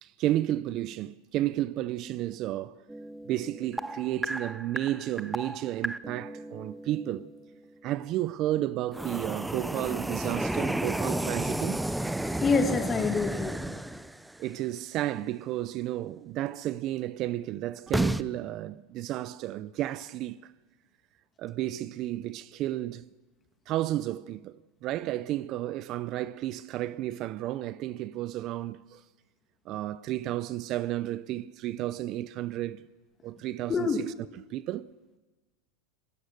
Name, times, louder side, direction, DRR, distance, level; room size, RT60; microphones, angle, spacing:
voice 1, 0.0-2.8 3.3-7.3 7.8-11.8 14.4-20.5 21.4-23.0 23.7-29.0 29.7-32.8 33.2-34.9, right 14 dB, 45° right, 0.6 m, -32 dB
sound 1, 2.9-7.6 8.9-14.4 17.9-18.2, right 1 dB, 5° right, 0.6 m, -33 dB
voice 2, 12.4-13.7 33.7-34.0, left 4 dB, 25° left, 2.1 m, -26 dB
26.0 x 17.5 x 6.7 m
supercardioid pair, 130°, 0 cm